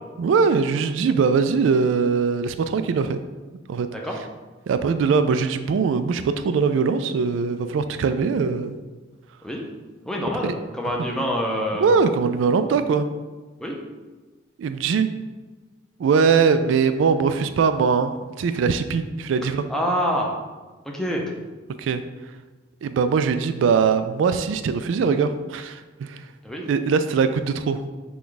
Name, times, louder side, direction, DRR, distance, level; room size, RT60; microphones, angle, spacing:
voice 1, 0.2-3.2 3.7-3.9 4.7-8.8 10.4-10.5 11.7-13.1 14.6-15.1 16.0-19.6 21.8-22.0 22.8-26.2 26.6-27.8, right 5 dB, 90° right, 10 dB, 0.3 m, -21 dB
voice 2, 10.1-11.9 13.6-13.7 19.7-20.3 20.8-21.2 26.4-26.6, equal, 5° left, -1 dB, 0.6 m, -26 dB
6.0 x 2.3 x 3.9 m, 1.3 s
head